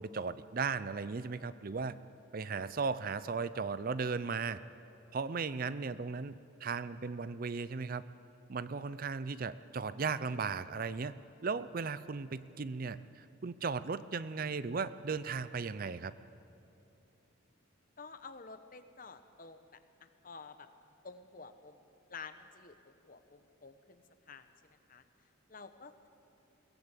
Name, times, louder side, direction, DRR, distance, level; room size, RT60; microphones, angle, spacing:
voice 1, 0.0-2.0 2.3-4.6 5.1-6.3 6.6-8.0 8.5-11.1 11.4-16.1, right 5 dB, 45° right, 15 dB, 0.5 m, -36 dB
voice 2, 18.0-20.7 21.0-21.8 22.1-24.5 24.9-25.0 25.5-26.1, left 4 dB, 40° left, 10 dB, 1.0 m, -51 dB
22.0 x 16.5 x 8.3 m, 2.8 s
head